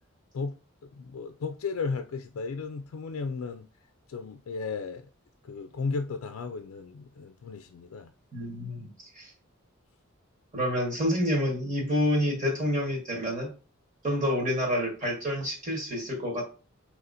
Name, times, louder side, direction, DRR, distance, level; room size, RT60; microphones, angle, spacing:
voice 1, 0.8-3.7 4.1-5.1 5.4-8.1, left 4 dB, 85° left, 0.4 m, -34 dB
voice 2, 8.3-8.9 9.1-9.3 10.5-13.5 14.0-16.4, equal, 35° right, 1.4 m, -28 dB
5.6 x 2.9 x 2.6 m
head